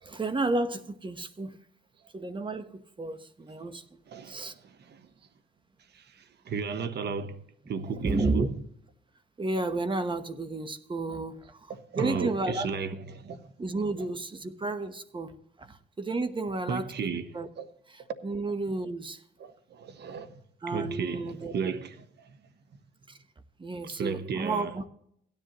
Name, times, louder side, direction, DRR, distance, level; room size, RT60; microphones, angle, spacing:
voice 1, 0.0-1.6 2.1-4.5 7.9-8.5 9.4-12.7 13.6-17.5 17.9-19.2 20.6-21.7 23.1-23.2 23.6-24.9, right 2 dB, 25° right, 1.1 m, -32 dB
voice 2, 4.1-5.1 5.9-7.4 7.7-8.5 11.7-13.4 16.7-17.3 17.6-17.7 19.4-20.3 20.7-21.9 23.9-24.7, right 5 dB, 60° right, 1.1 m, -34 dB
16.5 x 10.5 x 3.0 m
cardioid pair, 90°, 20 cm